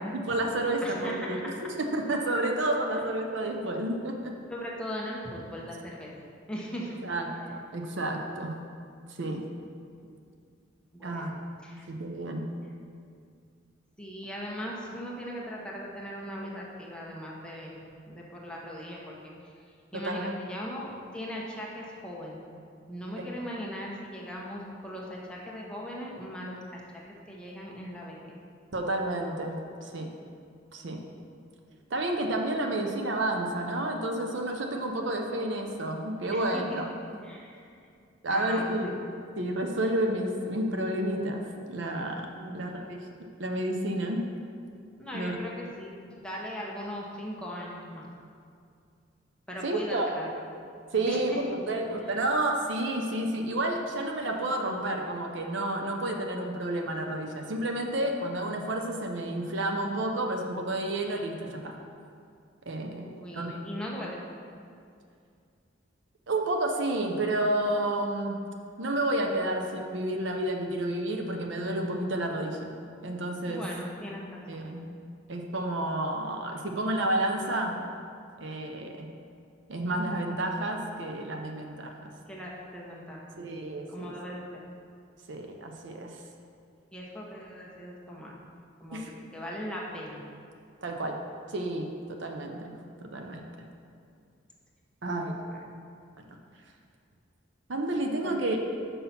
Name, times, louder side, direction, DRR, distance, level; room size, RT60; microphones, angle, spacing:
voice 1, 0.1-4.3 7.0-8.5 9.2-9.4 11.0-11.3 11.9-12.4 20.0-20.3 23.2-23.3 28.7-30.1 30.7-31.0 31.9-36.9 38.2-38.9 39.4-42.3 42.5-43.0 43.4-44.3 45.1-45.4 49.6-50.1 50.9-61.8 62.7-63.1 63.3-63.6 66.3-68.4 68.8-72.7 73.0-73.6 74.5-74.8 75.3-77.7 78.4-79.1 79.7-81.9 83.4-84.1 85.3-86.1 88.9-89.1 90.8-91.2 91.5-92.7 93.1-93.7 95.0-95.4 96.2-96.3 97.7-98.6, right 1 dB, 70° right, 3 dB, 0.7 m, -30 dB
voice 2, 0.8-1.4 4.5-6.1 6.5-7.0 10.9-11.4 11.6-11.9 14.0-19.5 19.9-22.4 22.9-26.8 27.3-28.3 36.3-36.8 37.1-37.9 38.3-38.9 42.3-42.6 45.0-48.1 49.5-50.3 51.0-51.6 51.9-52.1 63.0-64.2 73.5-74.7 82.3-83.4 83.9-84.4 86.9-88.3 88.8-90.2 95.3-95.6 98.2-98.4, equal, 5° left, -4 dB, 1.0 m, -39 dB
5.7 x 5.4 x 5.8 m, 2.4 s
head